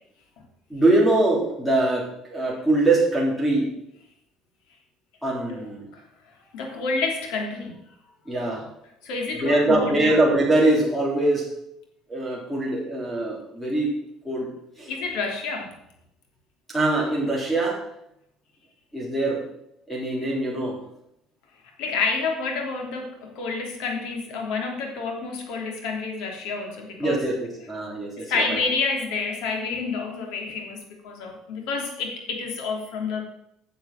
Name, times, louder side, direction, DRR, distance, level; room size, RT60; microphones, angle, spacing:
voice 1, 0.7-3.7 5.2-5.9 8.3-8.6 9.3-11.5 12.1-13.9 14.2-14.5 14.8-14.9 16.7-17.8 18.9-19.4 19.9-20.8 27.0-28.6, right 2 dB, ahead, -2 dB, 3.7 m, -23 dB
voice 2, 6.5-7.8 9.0-10.2 14.9-15.8 21.8-27.2 28.2-33.2, left 4 dB, 85° left, 2 dB, 3.2 m, -29 dB
10.5 x 7.2 x 7.7 m, 0.79 s
cardioid pair, 160°, 0 cm